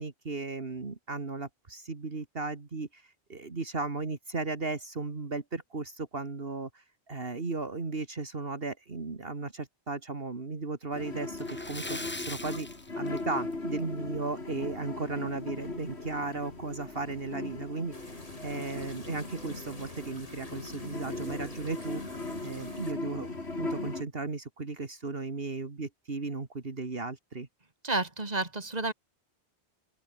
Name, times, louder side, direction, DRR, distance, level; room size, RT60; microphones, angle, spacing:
voice 1, 0.0-12.7 13.0-22.0 22.4-23.3 23.6-27.5, right 3 dB, 60° right, 2.4 m, -36 dB
sound 1, 10.9-24.0, left 3 dB, 75° left, 3.7 m, -39 dB
Splash splatter, 11.3-13.7 14.0-14.2 14.6-14.7 16.2-16.3 16.6-16.7 17.3-17.6, left 1 dB, 10° left, 1.0 m, -41 dB
sound 2, 17.9-22.9, left 1 dB, 35° left, 4.2 m, -48 dB
voice 2, 27.8-28.9, right 3 dB, 40° right, 2.9 m, -30 dB
open air
omnidirectional pair, 1.1 m